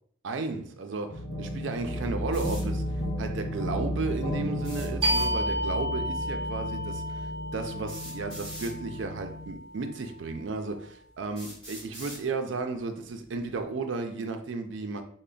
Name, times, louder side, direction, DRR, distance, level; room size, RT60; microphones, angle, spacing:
voice 1, 0.2-15.0, right 3 dB, 70° right, 6 dB, 0.4 m, -34 dB
sound 1, 1.1-9.6, equal, 90° left, 0.9 m, -34 dB
sound 2, 2.3-2.7 4.6-5.3 6.7-6.8 7.9-8.7 9.7-9.8 10.5-10.6 11.4-12.2, right 1 dB, 5° left, 1.1 m, -43 dB
sound 3, 5.0-10.3, equal, 25° right, 0.9 m, -32 dB
3.2 x 2.1 x 3.8 m, 0.63 s
head